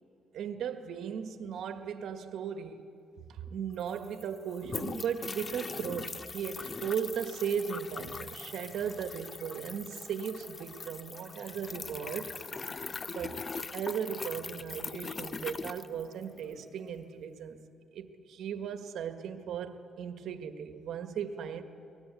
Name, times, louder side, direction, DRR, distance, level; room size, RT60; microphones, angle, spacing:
voice 1, 0.3-2.9 3.3-12.3 13.1-13.4 13.7-17.6 17.9-21.6, right 7 dB, 75° right, 7 dB, 1.6 m, -37 dB
sound 1, 3.5-3.6 3.7-16.5, left 4 dB, 35° left, 0.5 m, -41 dB
sound 2, 5.7-17.0, right 1 dB, 10° right, 5.6 m, -60 dB
22.5 x 19.5 x 8.3 m, 2.5 s
cardioid pair, 90°, 0 cm